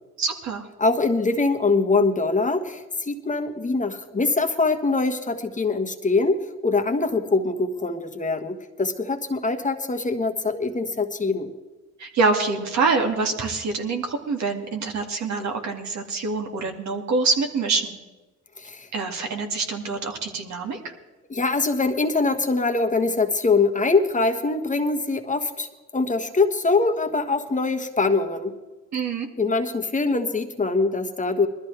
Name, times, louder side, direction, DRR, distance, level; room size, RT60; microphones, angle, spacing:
voice 1, 0.2-0.7 12.0-18.0 18.9-20.8 28.9-29.3, right 4 dB, 65° right, 3 dB, 2.3 m, -25 dB
voice 2, 0.8-11.5 18.6-18.9 21.3-25.7 25.9-28.5 29.4-31.5, left 3 dB, 25° left, 4 dB, 1.4 m, -23 dB
21.0 x 13.5 x 3.4 m, 1.2 s
cardioid pair, 90°, 30 cm